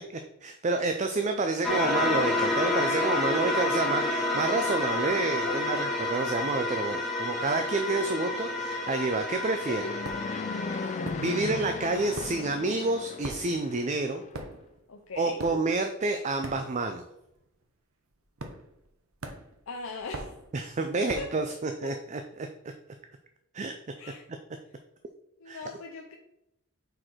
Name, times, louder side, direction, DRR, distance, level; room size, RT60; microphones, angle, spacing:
voice 1, 0.1-9.8 10.9-14.2 15.2-17.0 20.5-22.5 23.5-23.7 25.5-25.6, right 3 dB, 35° right, 6 dB, 0.5 m, -29 dB
sound 1, 1.6-12.3, left 2 dB, ahead, 1.6 m, -30 dB
voice 2, 5.5-6.0 9.7-9.9 14.9-15.4 19.7-20.3 20.9-21.3 24.0-24.3 25.4-26.2, left 4 dB, 75° left, 2 dB, 0.6 m, -39 dB
Fixed-wing aircraft airplane, 7.0-14.4, left 4 dB, 35° left, 0.3 m, -39 dB
sound 2, 10.0-10.4 11.0-11.7 11.9-17.1 17.3-17.6 18.4-18.9 19.2-21.5, right 2 dB, 90° right, 0.9 m, -41 dB
6.5 x 4.6 x 4.3 m, 0.84 s
head